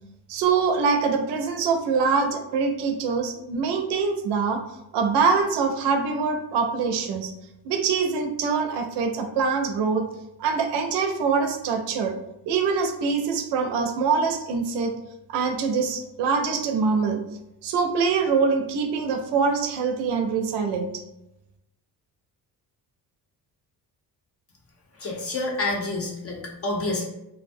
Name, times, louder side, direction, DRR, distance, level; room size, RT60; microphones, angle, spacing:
voice 1, 0.3-4.6 4.9-7.3 7.6-10.1 10.4-12.1 12.5-14.9 15.3-17.2 17.6-20.9, right 5 dB, 90° right, 5 dB, 0.5 m, -24 dB
voice 2, 25.0-27.0, left 2 dB, 35° left, 0 dB, 0.6 m, -28 dB
2.4 x 2.0 x 2.5 m, 0.87 s
cardioid pair, 105°, 39 cm